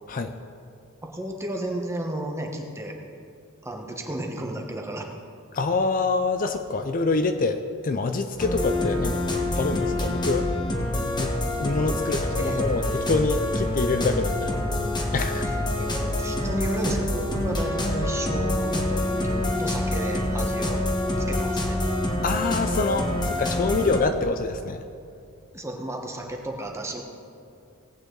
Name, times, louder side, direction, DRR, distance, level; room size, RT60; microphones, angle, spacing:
voice 1, 1.0-3.0 3.6-5.1 11.9-12.0 12.3-12.7 15.4-20.8 21.3-21.8 25.5-27.0, right 1 dB, 15° right, 2 dB, 1.2 m, -33 dB
voice 2, 5.5-10.5 11.2-11.3 11.6-14.5 15.1-15.5 22.2-24.8, left 3 dB, 40° left, 8 dB, 0.5 m, -26 dB
sound 1, 8.4-24.0, left 1 dB, 20° left, 1.2 m, -26 dB
18.0 x 8.7 x 3.9 m, 2.5 s
head